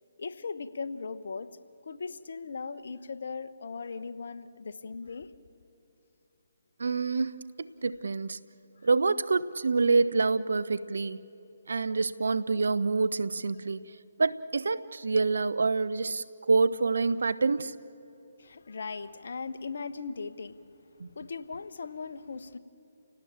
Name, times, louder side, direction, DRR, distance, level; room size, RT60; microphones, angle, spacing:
voice 1, 0.2-1.5 1.8-5.3 18.4-20.6 21.1-22.6, left 4 dB, 65° left, 1.1 m, -38 dB
voice 2, 6.8-8.4 8.8-11.2 11.7-13.9 14.2-17.8 21.0-21.1, right 4 dB, 75° right, 0.9 m, -27 dB
29.5 x 18.0 x 8.8 m
figure-of-eight pair, 145°, 0 cm